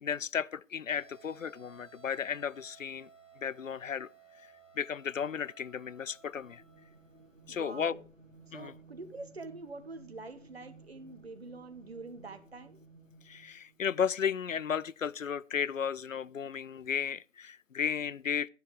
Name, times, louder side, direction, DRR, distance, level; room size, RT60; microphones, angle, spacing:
voice 1, 0.0-3.1 3.4-4.1 4.4-6.6 7.5-7.9 8.5-8.7 13.2-18.5, left 7 dB, 90° left, 0.5 m, -34 dB
sound 1, 0.9-7.8, right 6 dB, 30° left, 4.9 m, -59 dB
sound 2, 6.1-13.8, right 3 dB, 80° right, 2.8 m, -57 dB
voice 2, 7.5-8.0 8.5-12.8, right 3 dB, 55° right, 1.5 m, -45 dB
12.5 x 10.5 x 3.4 m
figure-of-eight pair, 150°, 38 cm